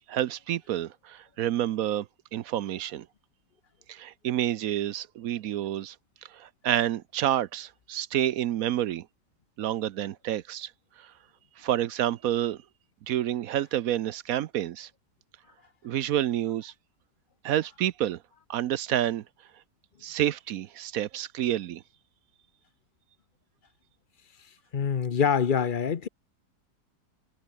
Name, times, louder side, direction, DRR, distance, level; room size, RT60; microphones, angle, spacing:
voice 1, 0.1-2.1 2.3-3.1 3.9-6.0 6.3-9.1 9.6-10.7 11.0-11.1 11.6-12.6 13.1-14.9 15.8-16.7 17.4-18.2 18.5-19.2 20.0-21.8, right 12 dB, 65° right, 1.0 m, -29 dB
voice 2, 24.7-26.1, left 7 dB, 40° left, 0.8 m, -25 dB
omnidirectional pair, 1.8 m